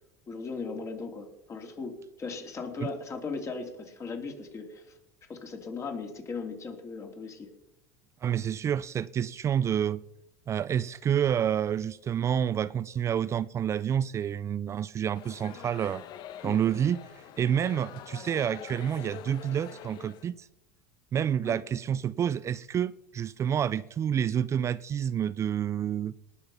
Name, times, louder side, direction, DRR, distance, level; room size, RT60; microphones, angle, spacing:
voice 1, 0.3-5.0 5.3-7.5 16.4-16.6 21.4-21.5, left 4 dB, 35° left, 3.2 m, -38 dB
voice 2, 8.2-10.0 10.5-16.0 16.4-20.5 21.1-26.2, right 9 dB, 35° right, 0.4 m, -29 dB
sound 1, 15.1-20.3, left 9 dB, 55° left, 1.1 m, -45 dB
19.0 x 7.0 x 5.6 m
supercardioid pair, 95°, 9 cm